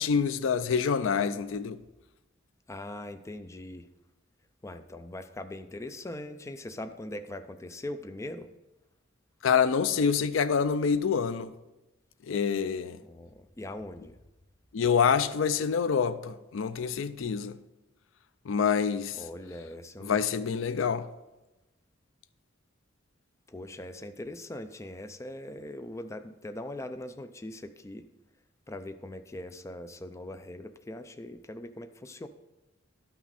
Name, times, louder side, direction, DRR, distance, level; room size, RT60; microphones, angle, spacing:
voice 1, 0.0-1.8 9.4-11.5 12.3-13.0 14.7-17.6 18.5-19.2 20.0-21.1, left 6 dB, 80° left, 0.4 m, -26 dB
voice 2, 2.7-3.9 4.6-8.5 13.0-14.2 19.1-20.5 23.5-28.1 28.7-32.3, left 1 dB, 15° left, 0.4 m, -41 dB
12.0 x 5.9 x 4.1 m
head